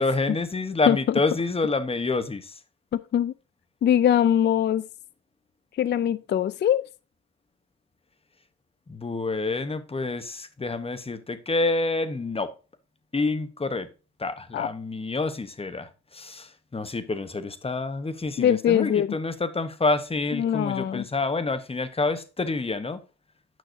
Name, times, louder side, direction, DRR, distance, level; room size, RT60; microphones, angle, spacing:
voice 1, 0.0-2.6 8.9-12.5 13.1-13.9 14.2-23.0, left 3 dB, 20° left, 1.0 m, -28 dB
voice 2, 2.9-3.3 3.8-4.8 5.8-6.8 14.5-14.7 18.4-19.1 20.3-21.0, left 10 dB, 35° left, 0.4 m, -22 dB
9.3 x 5.9 x 2.7 m
cardioid pair, 90°, 30 cm